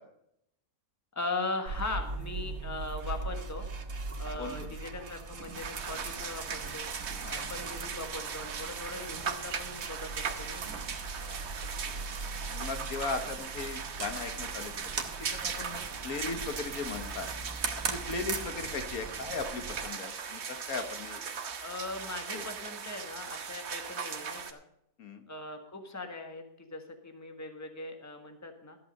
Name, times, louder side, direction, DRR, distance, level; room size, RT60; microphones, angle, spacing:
voice 1, 1.1-3.7 4.2-6.9 7.3-10.8 21.6-24.6 25.3-28.8, left 2 dB, 10° left, 5 dB, 1.4 m, -39 dB
sound 1, 1.7-19.9, right 4 dB, 75° right, 1.7 m, -40 dB
voice 2, 4.4-4.7 7.2-7.5 11.2-11.4 12.4-17.3 17.9-21.2 22.3-22.4 25.0-25.2, left 4 dB, 80° left, 7 dB, 1.7 m, -38 dB
sound 2, 5.5-24.5, right 6 dB, 55° right, 1.2 m, -39 dB
13.0 x 8.5 x 5.3 m, 0.77 s
omnidirectional pair, 1.5 m